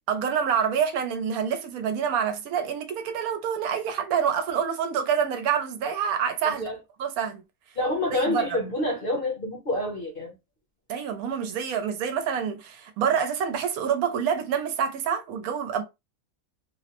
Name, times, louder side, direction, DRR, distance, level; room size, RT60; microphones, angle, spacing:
voice 1, 0.1-6.6 7.0-7.4 8.1-8.6 10.9-15.8, right 7 dB, 90° right, 1.1 m, -27 dB
voice 2, 6.4-6.8 7.8-10.3, left 1 dB, 45° left, 0.9 m, -28 dB
3.1 x 2.0 x 2.9 m
omnidirectional pair, 1.5 m